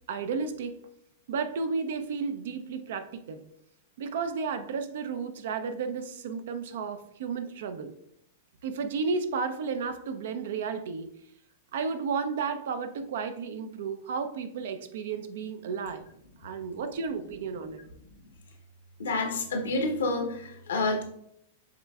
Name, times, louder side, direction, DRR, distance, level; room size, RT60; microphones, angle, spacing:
voice 1, 0.1-0.8 1.3-3.5 4.0-7.9 8.6-11.1 11.7-16.0 16.4-17.8, right 5 dB, 65° right, 9 dB, 0.5 m, -33 dB
voice 2, 19.0-21.0, left 2 dB, 75° left, 3 dB, 1.0 m, -28 dB
7.4 x 3.1 x 2.3 m, 0.73 s
figure-of-eight pair, 100°, 0 cm